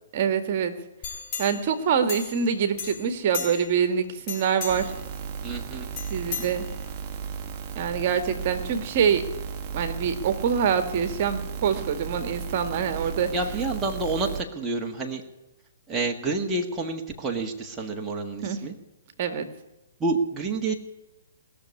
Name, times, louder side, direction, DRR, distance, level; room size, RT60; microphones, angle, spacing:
voice 1, 0.1-0.7 1.4-4.9 6.1-6.6 7.8-9.2 9.7-13.3 18.4-18.6 19.2-19.5, right 7 dB, 45° right, 9 dB, 1.7 m, -25 dB
sound 1, 1.0-2.5 2.8-3.8 4.2-5.0 6.0-7.1 7.5-7.6, left 6 dB, 30° left, 3.7 m, -36 dB
sound 2, 4.7-14.4, right 6 dB, 30° right, 1.4 m, -35 dB
voice 2, 5.4-5.9 13.3-15.2 15.9-18.7 20.0-20.8, right 3 dB, 15° right, 0 dB, 1.6 m, -28 dB
20.0 x 6.8 x 9.6 m, 1.0 s
hypercardioid pair, 140°, 0 cm